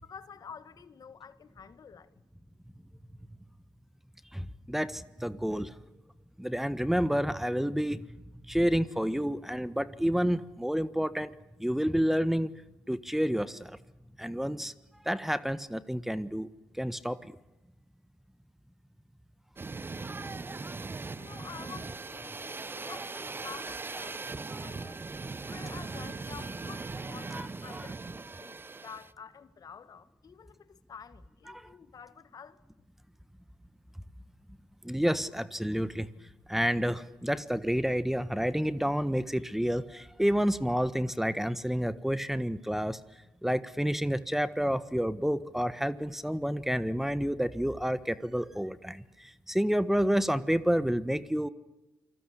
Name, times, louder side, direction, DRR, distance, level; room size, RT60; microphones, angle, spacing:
voice 1, 0.0-2.2 21.1-25.0 25.4-32.6, left 6 dB, 55° left, 1.8 m, -49 dB
voice 2, 4.3-5.7 6.4-8.1 8.4-11.3 11.6-12.5 12.9-13.8 14.2-14.7 15.0-16.5 16.7-17.3 27.3-27.5 31.5-31.7 34.8-36.1 36.5-43.0 43.4-51.5, equal, 5° right, 1.4 m, -29 dB
Jet Car, 19.6-29.1, right 3 dB, 30° right, 1.1 m, -39 dB
28.5 x 20.5 x 8.5 m
hypercardioid pair, 50°, 8 cm